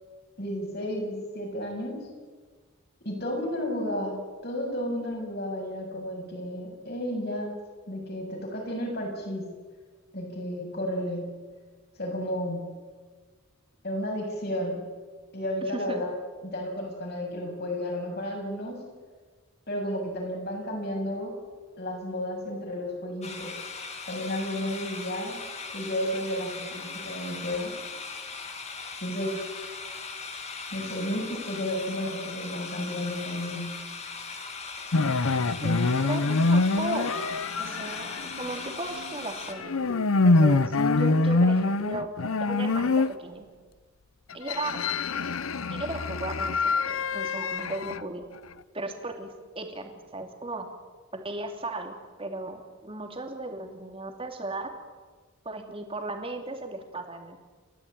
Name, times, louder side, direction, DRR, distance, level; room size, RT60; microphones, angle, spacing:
voice 1, 0.4-2.0 3.0-7.5 7.9-9.5 10.1-11.4 12.0-12.7 13.8-14.9 15.3-16.1 16.4-18.8 19.7-21.3 21.8-23.6 24.1-25.4 25.7-27.8 29.0-29.5 30.7-33.8, left 1 dB, 50° left, 0 dB, 7.2 m, -32 dB
voice 2, 15.6-16.0 35.6-37.1 37.6-42.1 42.4-43.5 44.3-44.8 45.7-48.2 48.7-49.3 49.5-50.7 51.1-54.7 55.4-57.4, right 2 dB, 25° right, 4 dB, 2.8 m, -36 dB
sound 1, 23.2-39.5, left 4 dB, 30° left, 2.3 m, -39 dB
sound 2, 34.9-39.3 39.5-43.1 44.3-48.0, left 3 dB, 85° left, 0.8 m, -25 dB
30.0 x 13.5 x 9.2 m, 1.4 s
head